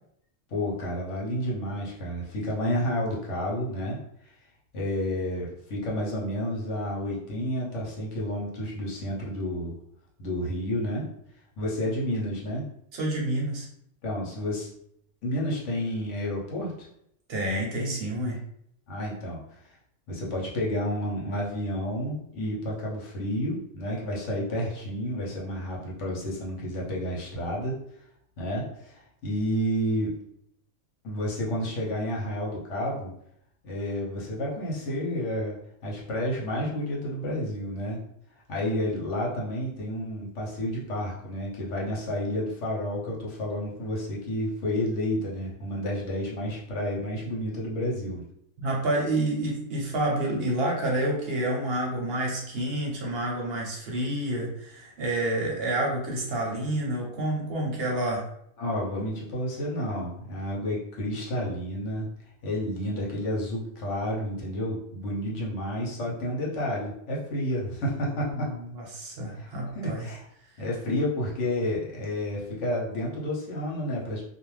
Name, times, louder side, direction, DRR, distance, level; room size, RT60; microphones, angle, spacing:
voice 1, 0.5-4.3 4.7-9.7 10.2-11.1 11.6-12.7 14.0-14.7 15.2-16.9 18.9-19.6 20.1-27.8 28.4-30.2 31.0-33.1 33.6-35.6 35.8-38.0 38.5-48.2 58.6-62.1 62.4-68.5 69.4-70.3 70.6-74.2, equal, 75° left, -3 dB, 1.1 m, -30 dB
voice 2, 12.9-13.7 17.3-18.4 48.6-58.2 68.3-70.1, right 1 dB, 60° right, -1 dB, 0.9 m, -29 dB
2.4 x 2.2 x 3.1 m, 0.73 s
omnidirectional pair, 1.3 m